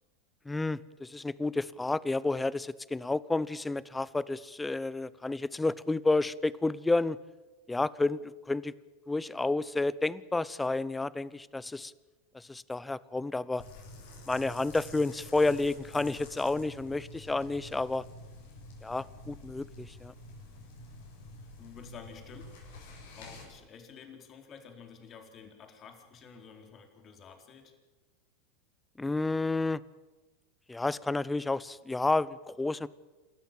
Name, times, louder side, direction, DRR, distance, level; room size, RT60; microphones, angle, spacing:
voice 1, 0.4-7.2 7.7-8.7 9.1-11.9 12.3-13.6 14.3-18.1 18.8-20.1 29.0-29.8 30.7-32.9, left 2 dB, 10° left, 20 dB, 0.8 m, -30 dB
sound 1, 13.6-23.4, left 1 dB, 65° left, 7.6 m, -49 dB
voice 2, 21.4-22.5 23.1-27.7, left 6 dB, 35° left, 5 dB, 4.1 m, -50 dB
28.0 x 14.0 x 9.1 m, 1.2 s
hypercardioid pair, 90°, 0 cm